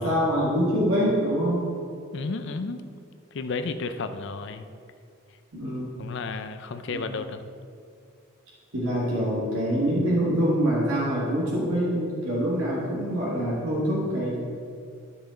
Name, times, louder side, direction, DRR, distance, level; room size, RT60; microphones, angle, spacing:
voice 1, 0.0-1.7 5.5-6.0 6.9-7.1 8.7-14.4, equal, 85° right, -6 dB, 1.8 m, -25 dB
voice 2, 2.1-2.8 3.3-4.7 6.0-7.4, left 4 dB, 60° left, 9 dB, 0.5 m, -32 dB
13.0 x 5.2 x 3.8 m, 2.3 s
head